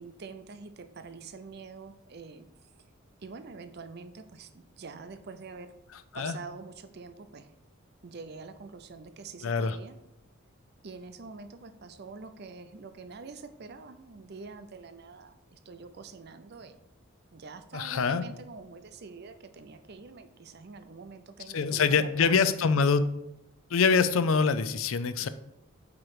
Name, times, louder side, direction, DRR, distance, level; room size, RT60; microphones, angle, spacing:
voice 1, 0.0-2.7 3.2-5.7 6.1-7.5 8.0-10.0 10.8-16.8 17.3-22.6, right 4 dB, 50° right, 10 dB, 0.5 m, -45 dB
voice 2, 9.4-9.8 17.7-18.2 21.5-23.0 23.7-25.3, left 5 dB, 80° left, 12 dB, 0.5 m, -24 dB
8.6 x 3.1 x 4.8 m, 0.84 s
head